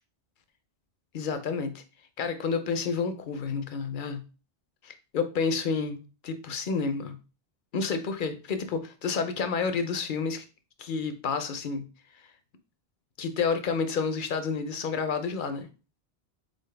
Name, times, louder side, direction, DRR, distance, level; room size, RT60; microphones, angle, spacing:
voice 1, 1.1-1.8 2.2-4.2 4.8-7.2 7.7-10.5 10.8-11.8 13.2-15.7, left 5 dB, 60° left, 9 dB, 0.7 m, -30 dB
4.0 x 3.9 x 3.3 m, 0.33 s
omnidirectional pair, 1.1 m